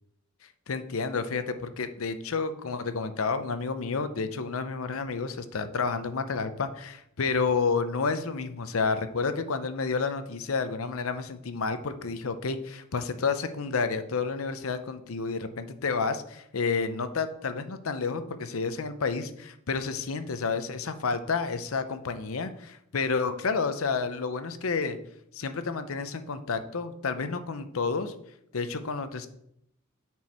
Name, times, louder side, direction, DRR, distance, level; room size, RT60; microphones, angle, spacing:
voice 1, 0.7-25.0 25.3-28.1 28.5-29.3, left 4 dB, 75° left, 10 dB, 0.7 m, -30 dB
9.5 x 4.6 x 4.3 m, 0.76 s
head